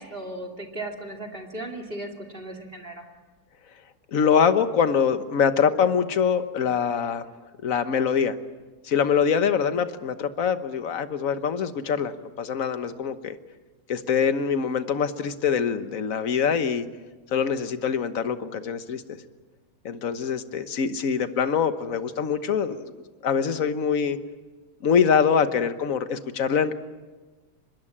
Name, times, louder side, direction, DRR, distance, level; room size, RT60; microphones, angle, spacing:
voice 1, 0.0-3.0, right 1 dB, 25° right, 6 dB, 2.6 m, -36 dB
voice 2, 4.1-7.2 7.6-8.4 8.8-13.4 13.9-16.9 17.3-19.0 19.8-22.9 23.2-24.2 24.8-26.7, left 7 dB, 45° left, 10 dB, 1.2 m, -24 dB
25.0 x 21.0 x 8.7 m, 1.3 s
omnidirectional pair, 2.4 m